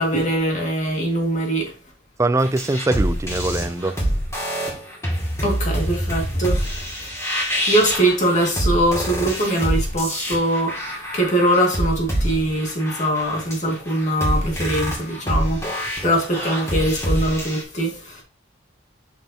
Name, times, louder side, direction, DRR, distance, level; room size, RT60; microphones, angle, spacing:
voice 1, 0.0-1.7 5.4-6.9 7.7-18.2, right 1 dB, 40° left, 2.1 m, -22 dB
voice 2, 2.2-4.0 16.0-16.2, right 2 dB, 15° right, 0.3 m, -22 dB
sound 1, 2.4-17.6, equal, 15° left, 2.4 m, -26 dB
6.7 x 6.4 x 2.9 m
head